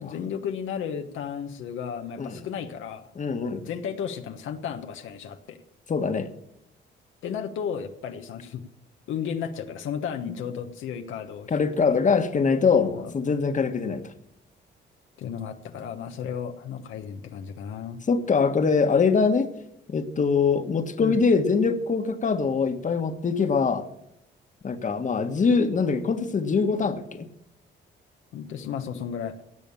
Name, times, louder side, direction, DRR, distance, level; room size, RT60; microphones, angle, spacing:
voice 1, 0.0-3.1 3.6-5.6 7.2-8.6 9.1-11.6 11.9-12.0 13.0-13.1 15.2-18.0 21.0-21.2 28.3-29.4, left 7 dB, 80° left, 1.2 m, -34 dB
voice 2, 3.1-3.7 5.9-6.3 11.5-14.0 18.1-19.5 19.9-23.8 24.6-27.3, left 5 dB, 40° left, 1.5 m, -23 dB
17.5 x 7.0 x 7.1 m
cardioid pair, 90°, 20 cm